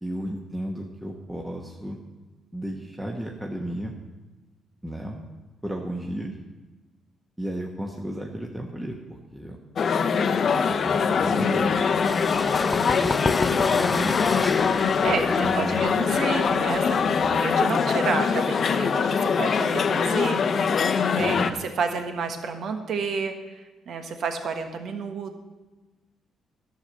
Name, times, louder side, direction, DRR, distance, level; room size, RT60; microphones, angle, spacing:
voice 1, 0.0-2.0 2.5-3.9 4.8-5.2 5.6-6.3 7.4-9.6 10.6-11.9 12.7-14.2 15.0-15.9 17.2-17.4 21.2-21.5, right 1 dB, 10° right, 0 dB, 1.2 m, -34 dB
sound 1, 9.8-21.5, left 6 dB, 50° left, 0.7 m, -23 dB
sound 2, 11.8-17.3, left 3 dB, 20° left, 0.5 m, -30 dB
voice 2, 15.5-25.4, right 5 dB, 65° right, 6 dB, 1.4 m, -30 dB
11.5 x 6.6 x 7.6 m, 1.2 s
cardioid pair, 90°, 0 cm